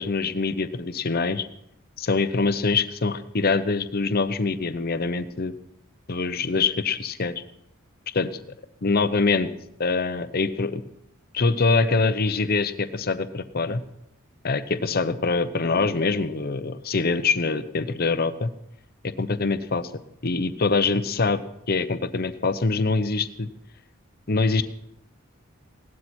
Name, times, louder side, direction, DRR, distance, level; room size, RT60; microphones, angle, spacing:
voice 1, 0.0-1.4 2.0-5.5 6.1-7.3 8.1-8.3 8.8-9.5 9.8-10.8 11.3-13.8 14.4-18.5 19.2-19.9 20.2-21.4 21.7-23.5 24.3-24.6, left 4 dB, 45° left, 11 dB, 0.7 m, -24 dB
17.5 x 12.5 x 4.3 m, 0.76 s
head